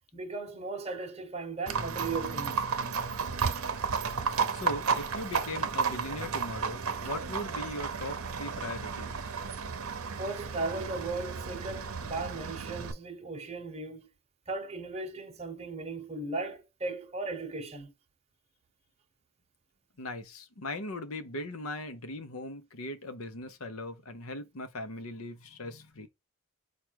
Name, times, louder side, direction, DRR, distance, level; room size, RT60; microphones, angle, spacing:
voice 1, 0.1-2.6 10.2-14.1 14.5-17.9, right 3 dB, 30° right, 0.9 m, -37 dB
Livestock farm animals working animals, 1.7-12.9, right 5 dB, 70° right, 0.7 m, -33 dB
voice 2, 4.5-9.3 20.0-26.1, left 1 dB, 75° left, 0.8 m, -39 dB
4.8 x 2.4 x 4.5 m
head